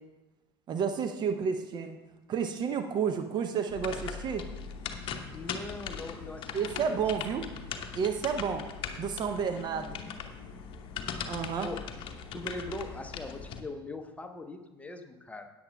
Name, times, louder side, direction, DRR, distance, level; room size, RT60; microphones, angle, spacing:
voice 1, 0.7-2.0 2.3-4.4 6.5-7.5 7.9-8.7 9.0-10.0 11.3-11.7, right 6 dB, 35° right, 7 dB, 0.6 m, -31 dB
sound 1, 3.7-13.6, left 6 dB, 40° left, 0.8 m, -40 dB
voice 2, 5.3-7.0 7.4-7.5 11.6-11.9 12.3-15.5, left 2 dB, 10° left, 6 dB, 0.8 m, -41 dB
16.5 x 8.7 x 2.2 m, 1.1 s
figure-of-eight pair, 70°, 13 cm